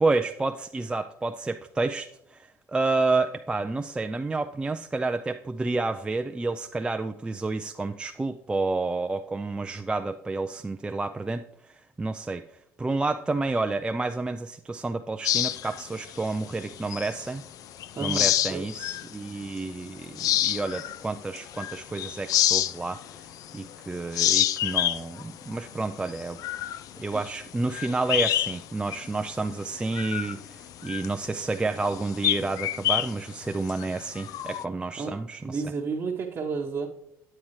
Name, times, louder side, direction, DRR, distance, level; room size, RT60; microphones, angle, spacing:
voice 1, 0.0-12.4 12.8-17.4 18.0-23.0 23.5-26.4 27.0-35.6, right 3 dB, 15° right, 6 dB, 0.3 m, -30 dB
sound 1, 15.2-17.4 17.8-19.1 19.6-19.7 20.1-23.8 24.1-28.6 28.9-29.1 29.5-34.6, left 12 dB, 60° left, 0.4 m, -28 dB
voice 2, 18.0-18.6 35.0-35.1 35.4-36.9, right 4 dB, 35° right, -3 dB, 0.9 m, -31 dB
8.7 x 8.4 x 3.2 m, 0.77 s
cardioid pair, 105°, 7 cm